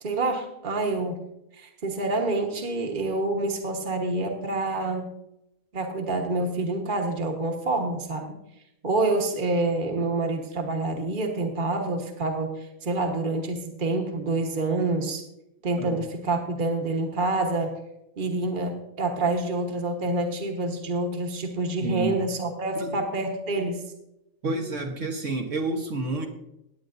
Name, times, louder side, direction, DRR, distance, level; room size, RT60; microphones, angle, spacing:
voice 1, 0.0-1.2 1.6-5.1 5.7-8.3 8.8-15.2 15.6-17.7 18.2-23.8, right 2 dB, 40° right, 3 dB, 1.4 m, -27 dB
voice 2, 21.8-22.2 22.7-22.9 24.4-26.3, right 3 dB, 65° right, 2 dB, 1.5 m, -29 dB
17.5 x 9.2 x 2.6 m, 0.86 s
omnidirectional pair, 1.4 m